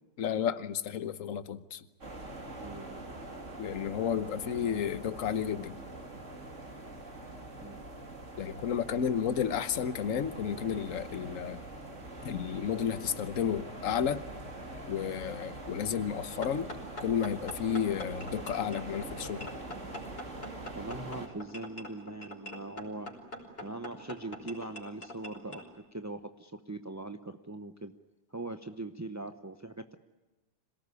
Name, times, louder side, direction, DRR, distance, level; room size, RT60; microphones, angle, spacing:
voice 1, 0.2-1.8 3.6-5.8 8.4-11.6 12.2-14.2 14.9-16.7 17.0-19.5, left 8 dB, 55° left, 13 dB, 1.4 m, -32 dB
sound 1, 2.0-21.3, right 2 dB, 45° right, 3.3 m, -44 dB
voice 2, 2.6-3.0 7.6-7.8 20.7-23.1 23.6-27.9 28.3-29.9, right 2 dB, 20° right, 8 dB, 0.5 m, -41 dB
sound 2, 16.4-25.7, left 1 dB, 35° left, 5.4 m, -44 dB
26.5 x 18.5 x 9.8 m, 1.2 s
omnidirectional pair, 1.8 m